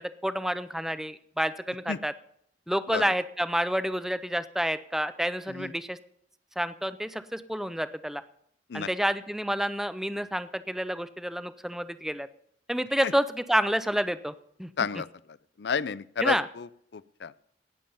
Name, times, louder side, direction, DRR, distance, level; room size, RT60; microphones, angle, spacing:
voice 1, 0.0-2.1 2.7-6.0 6.6-8.2 8.7-12.3 12.7-14.3 14.6-14.7 16.2-16.5, equal, ahead, 13 dB, 0.5 m, -29 dB
voice 2, 15.6-16.7 16.9-17.3, left 6 dB, 70° left, 18 dB, 0.5 m, -30 dB
18.0 x 7.6 x 5.5 m, 0.69 s
head